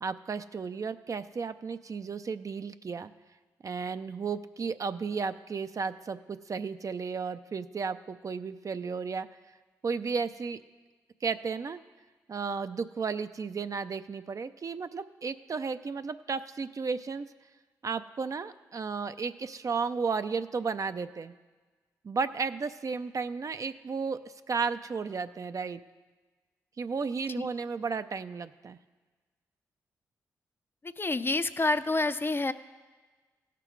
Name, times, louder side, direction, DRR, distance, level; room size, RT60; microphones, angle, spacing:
voice 1, 0.0-3.1 3.6-9.3 9.8-10.6 11.2-11.8 12.3-17.3 17.8-21.3 22.0-24.2 24.5-25.8 26.8-28.8, right 5 dB, 45° right, 11 dB, 0.5 m, -33 dB
voice 2, 30.8-32.5, left 2 dB, 30° left, 11 dB, 0.5 m, -28 dB
16.5 x 6.0 x 4.5 m, 1.3 s
supercardioid pair, 45°, 8 cm